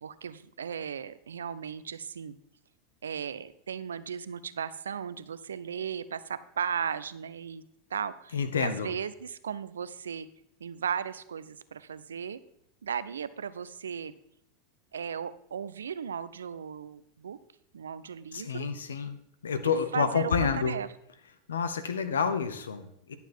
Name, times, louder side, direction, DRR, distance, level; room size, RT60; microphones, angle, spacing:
voice 1, 0.0-2.4 3.0-7.6 7.9-10.3 10.6-12.4 12.8-14.1 14.9-17.4 17.7-18.7 19.6-20.9, right 7 dB, 85° right, 15 dB, 0.4 m, -36 dB
voice 2, 8.3-8.9 18.3-19.2 19.4-20.8 21.5-23.1, left 6 dB, 85° left, 11 dB, 0.9 m, -29 dB
10.5 x 6.9 x 4.4 m, 0.75 s
hypercardioid pair, 95°, 0 cm